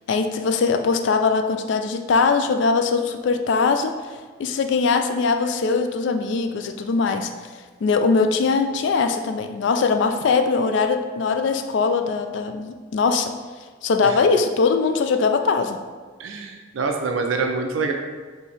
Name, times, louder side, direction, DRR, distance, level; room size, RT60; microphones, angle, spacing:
voice 1, 0.1-4.0 4.4-7.3 7.8-13.3 13.8-15.8, left 4 dB, 60° left, 7 dB, 0.3 m, -21 dB
voice 2, 16.2-17.9, right 4 dB, 75° right, 3 dB, 0.4 m, -25 dB
4.3 x 2.7 x 3.3 m, 1.5 s
head